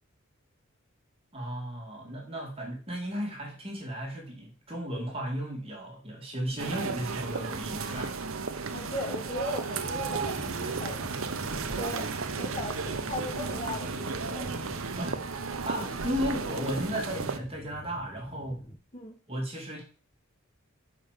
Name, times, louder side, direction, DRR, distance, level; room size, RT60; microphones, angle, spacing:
voice 1, 1.3-8.1 15.0-15.3 15.7-18.6 19.3-19.8, equal, 25° right, -1 dB, 2.3 m, -35 dB
sound 1, 6.6-17.4, right 4 dB, 75° right, 0.8 m, -34 dB
voice 2, 8.7-11.1 11.7-14.5 18.9-19.2, left 1 dB, 30° left, 1 dB, 2.3 m, -38 dB
sound 2, 9.8-18.8, left 1 dB, 10° left, 0.7 m, -45 dB
5.7 x 5.1 x 6.5 m, 0.39 s
head